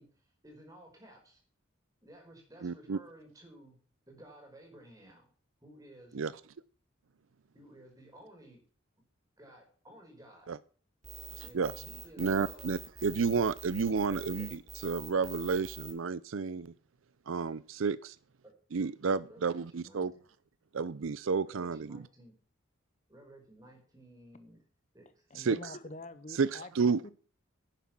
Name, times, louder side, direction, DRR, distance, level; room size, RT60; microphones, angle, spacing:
voice 1, 0.0-1.4 2.0-3.8 4.1-5.3 5.6-6.2 7.5-8.6 9.4-10.5 11.4-12.7 14.1-14.6 18.4-18.5 19.3-20.0 21.4-22.3 23.1-24.6 24.9-25.3, right 1 dB, 15° right, 5.0 m, -55 dB
voice 2, 2.6-3.0 6.1-6.3 10.5-10.6 11.5-11.7 12.2-16.7 17.3-18.2 18.7-20.1 20.7-22.0 25.4-25.7 26.4-27.0, right 5 dB, 75° right, 0.5 m, -31 dB
sound 1, 11.0-15.9, right 5 dB, 35° right, 3.4 m, -46 dB
voice 3, 25.3-26.7 27.0-27.1, left 2 dB, 35° left, 0.7 m, -45 dB
11.0 x 9.4 x 6.0 m
head